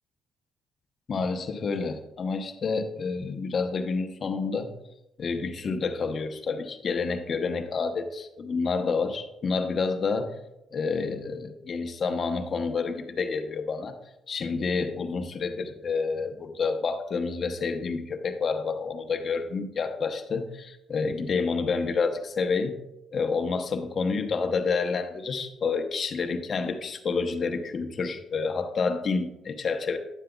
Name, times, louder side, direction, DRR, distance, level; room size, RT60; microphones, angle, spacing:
voice 1, 1.1-4.7 5.2-10.3 10.7-14.0 14.3-22.7 23.1-30.0, left 4 dB, 50° left, 6 dB, 0.8 m, -29 dB
10.0 x 7.5 x 2.3 m, 0.91 s
cardioid pair, 90°, 0 cm